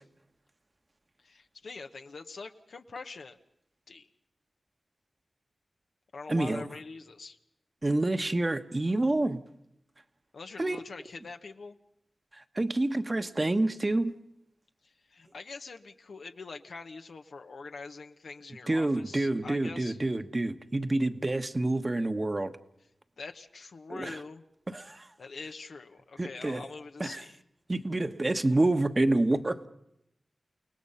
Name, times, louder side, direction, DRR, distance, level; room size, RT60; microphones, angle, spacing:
voice 1, 1.2-3.4 3.9-4.1 6.1-7.4 10.3-11.8 14.8-20.0 23.2-24.4 25.2-27.4, left 4 dB, 80° left, 1.1 m, -44 dB
voice 2, 6.3-6.7 7.8-9.4 10.6-10.8 12.3-14.2 18.7-22.5 23.9-24.2 24.7-25.1 26.2-26.6 27.0-27.2 27.7-29.7, right 2 dB, 35° right, 1.2 m, -28 dB
29.5 x 18.0 x 5.6 m
cardioid pair, 45°, 0 cm